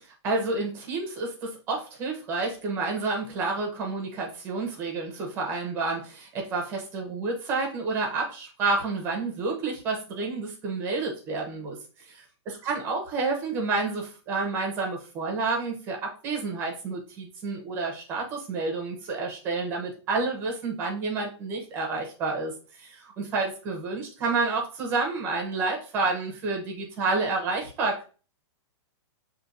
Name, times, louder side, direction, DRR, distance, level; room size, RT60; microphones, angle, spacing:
voice 1, 0.2-11.8 12.0-22.5 22.8-28.0, right 3 dB, 15° right, 1 dB, 0.8 m, -29 dB
6.1 x 2.8 x 2.6 m, 0.36 s
hypercardioid pair, 180°, 15 cm